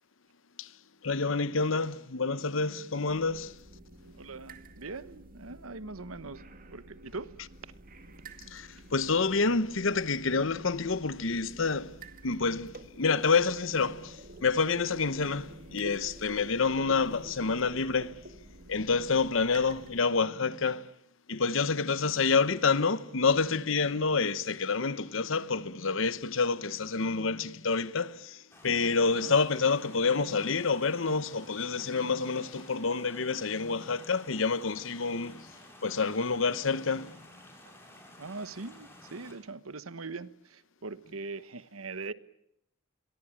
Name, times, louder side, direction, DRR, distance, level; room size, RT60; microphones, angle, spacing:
voice 1, 1.0-3.5 8.5-11.9 12.2-18.1 18.7-20.9 21.3-28.4 28.6-35.5 35.8-37.1, left 4 dB, 65° left, 1.0 m, -28 dB
sound 1, 3.1-20.0, right 1 dB, 45° right, 2.2 m, -50 dB
voice 2, 4.1-6.4 6.7-7.3 29.0-29.4 38.2-42.1, right 3 dB, 85° right, 1.3 m, -41 dB
sound 2, 28.5-39.3, left 1 dB, 10° left, 7.2 m, -53 dB
28.0 x 22.5 x 8.8 m
head